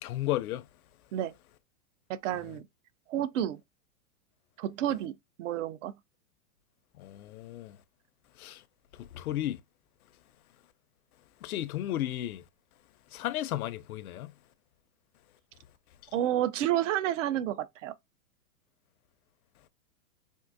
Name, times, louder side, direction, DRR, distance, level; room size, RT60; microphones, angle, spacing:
voice 1, 0.0-0.6 2.3-2.6 7.0-7.8 8.4-8.6 8.9-9.6 11.4-12.4 13.1-14.3, left 13 dB, 85° left, 0.6 m, -34 dB
voice 2, 2.1-2.7 3.1-3.6 4.6-5.9 16.1-17.9, right 11 dB, 60° right, 0.5 m, -30 dB
3.6 x 2.5 x 2.5 m
supercardioid pair, 155°, 42 cm